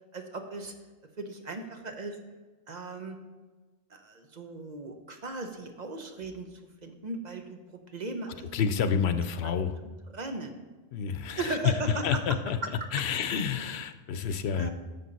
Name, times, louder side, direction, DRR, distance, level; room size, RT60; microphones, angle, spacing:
voice 1, 0.1-0.7 1.2-2.2 2.7-3.2 3.9-8.5 10.1-10.6 11.4-12.4 14.2-14.3 14.6-14.7, right 2 dB, 45° right, 5 dB, 1.0 m, -37 dB
voice 2, 8.5-9.7 10.9-12.6 12.9-14.7, left 7 dB, 90° left, 10 dB, 0.9 m, -29 dB
11.0 x 6.9 x 4.1 m, 1.2 s
omnidirectional pair, 1.1 m